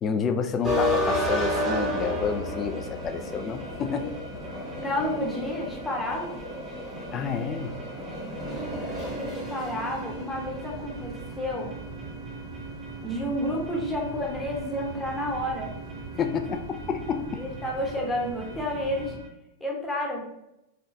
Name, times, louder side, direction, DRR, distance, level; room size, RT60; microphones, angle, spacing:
voice 1, 0.0-4.2 7.1-7.9 16.2-17.4, left 6 dB, 30° left, 8 dB, 0.3 m, -29 dB
sound 1, 0.6-19.3, left 1 dB, 10° right, 1.2 m, -34 dB
voice 2, 4.8-6.4 9.2-11.7 13.0-15.8 17.4-19.2 19.6-20.2, left 1 dB, 5° left, -2 dB, 0.9 m, -30 dB
sound 2, 8.4-19.1, right 4 dB, 55° right, 0.7 m, -40 dB
3.7 x 2.2 x 2.6 m, 0.85 s
hypercardioid pair, 110°, 0 cm